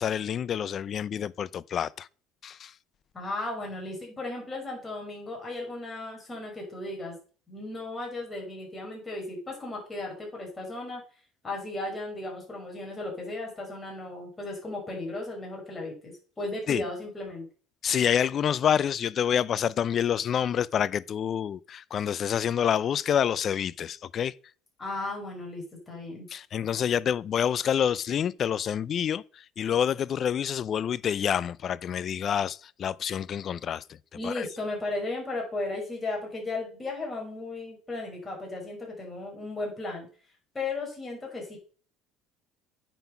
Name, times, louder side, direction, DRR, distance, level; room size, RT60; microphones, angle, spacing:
voice 1, 0.0-2.1 2.4-2.7 16.7-16.8 17.8-24.3 26.3-34.0 34.2-34.5, left 9 dB, 45° left, 0.4 m, -27 dB
voice 2, 3.1-7.2 7.5-11.0 11.4-17.5 24.8-26.3 34.1-40.1 40.5-41.6, left 2 dB, 20° left, 5.3 m, -35 dB
9.0 x 5.9 x 5.7 m
supercardioid pair, 100°, 0 cm